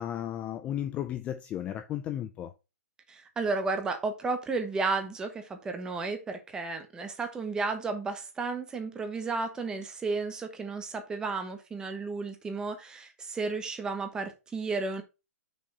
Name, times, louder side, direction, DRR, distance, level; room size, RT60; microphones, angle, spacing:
voice 1, 0.0-2.5, left 11 dB, 15° left, 0.4 m, -34 dB
voice 2, 3.1-15.0, right 4 dB, 10° right, 1.0 m, -33 dB
6.2 x 4.2 x 5.4 m
hypercardioid pair, 155°, 8 cm